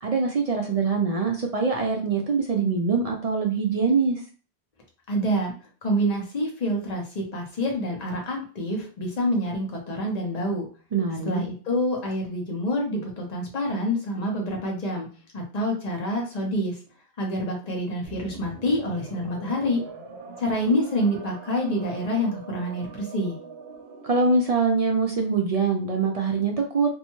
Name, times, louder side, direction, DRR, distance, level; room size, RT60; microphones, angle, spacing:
voice 1, 0.0-4.2 10.9-11.4 24.0-26.9, right 4 dB, 55° right, 1 dB, 0.4 m, -23 dB
voice 2, 5.1-5.5 5.8-10.7 11.2-15.1 15.3-16.7 17.2-19.8 20.4-23.4, equal, 45° left, 0 dB, 0.9 m, -27 dB
sound 1, 18.0-24.5, right 4 dB, 80° right, 0.9 m, -43 dB
2.6 x 2.2 x 3.0 m, 0.39 s
omnidirectional pair, 1.0 m